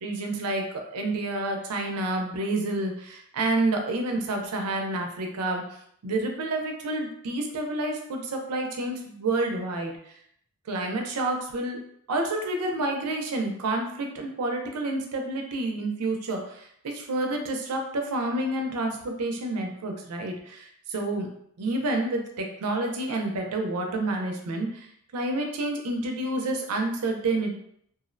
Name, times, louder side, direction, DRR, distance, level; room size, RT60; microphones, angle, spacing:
voice 1, 0.0-5.6 6.0-10.1 10.7-11.8 12.1-21.3 21.6-27.5, right 2 dB, 85° right, 3 dB, 0.5 m, -29 dB
2.4 x 2.0 x 2.5 m, 0.69 s
head